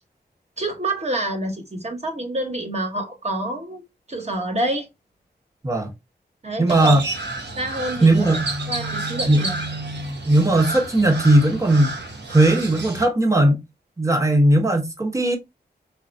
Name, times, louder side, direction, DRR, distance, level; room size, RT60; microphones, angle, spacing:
voice 1, 0.6-3.8 4.1-4.9 6.4-7.0 7.6-8.3 8.7-9.6, right 1 dB, 40° right, 1.4 m, -27 dB
voice 2, 6.6-7.0 8.0-8.4 9.3-9.4 10.3-11.9 12.3-13.6 14.0-15.4, right 1 dB, 15° right, 1.2 m, -17 dB
Crow, 6.7-13.0, right 2 dB, 80° right, 1.3 m, -30 dB
3.9 x 3.2 x 2.8 m
wide cardioid pair, 85°, 18 cm